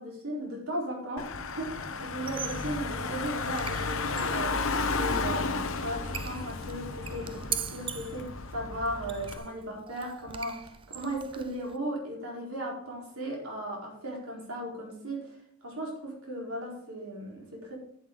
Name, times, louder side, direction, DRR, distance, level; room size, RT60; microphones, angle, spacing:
voice 1, 0.0-1.9 2.1-4.7 4.9-15.3 15.6-17.8, right 1 dB, 75° right, -2 dB, 4.4 m, -36 dB
Car / Engine, 1.2-9.4, left 3 dB, 65° left, 0.9 m, -33 dB
Squeak, 2.2-11.8, right 8 dB, 25° right, 0.4 m, -42 dB
11.0 x 7.9 x 4.0 m, 0.70 s
head